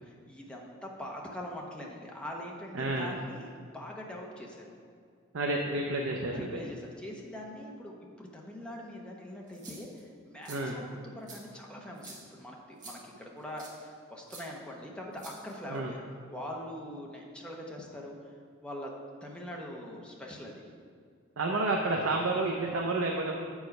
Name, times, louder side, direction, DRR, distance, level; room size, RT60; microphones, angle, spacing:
voice 1, 0.0-4.7 6.3-16.0 16.3-18.2 18.6-18.9 19.2-20.6, left 1 dB, 5° left, -2 dB, 0.8 m, -43 dB
voice 2, 2.7-3.2 5.3-6.5 10.5-10.8 15.7-15.9 21.4-23.3, right 2 dB, 75° right, 0 dB, 0.6 m, -30 dB
sound 1, 9.5-10.0 10.4-10.6 11.3-11.4 12.0-12.2 12.8-13.0 13.6-13.8 14.3-14.4 15.2-15.8, right 3 dB, 40° right, 1.4 m, -48 dB
7.4 x 4.8 x 5.3 m, 2.2 s
head